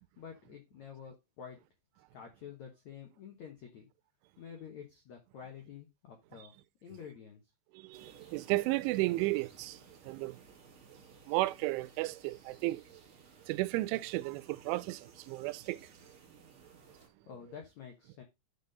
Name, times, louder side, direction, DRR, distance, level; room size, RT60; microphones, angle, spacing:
voice 1, 0.2-1.6 2.1-3.9 4.4-6.5 6.8-7.4 17.0-18.2, left 7 dB, 85° left, 1.6 m, -49 dB
voice 2, 7.7-10.4 10.9-13.0 13.5-16.1, right 20 dB, 90° right, 3.0 m, -34 dB
sound 1, 7.9-17.1, right 4 dB, 45° right, 1.8 m, -59 dB
12.0 x 4.1 x 4.0 m
omnidirectional pair, 5.4 m